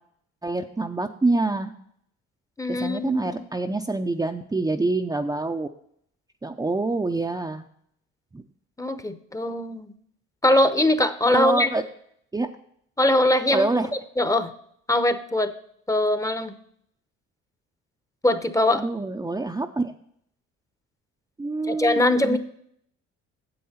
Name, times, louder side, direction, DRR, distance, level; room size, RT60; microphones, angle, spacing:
voice 1, 0.4-1.7 2.7-5.7 6.4-7.7 8.3-8.4 11.3-11.8 12.3-12.5 13.5-13.9 18.7-19.9 21.4-22.4, right 2 dB, 10° right, 3 dB, 0.6 m, -26 dB
voice 2, 2.6-3.2 8.8-9.9 10.4-11.7 13.0-13.7 14.2-14.5 14.9-15.5 15.9-16.5 18.2-18.8 21.7-22.4, left 1 dB, 10° left, 11 dB, 0.9 m, -21 dB
9.6 x 7.6 x 4.3 m, 0.66 s
supercardioid pair, 75°, 30 cm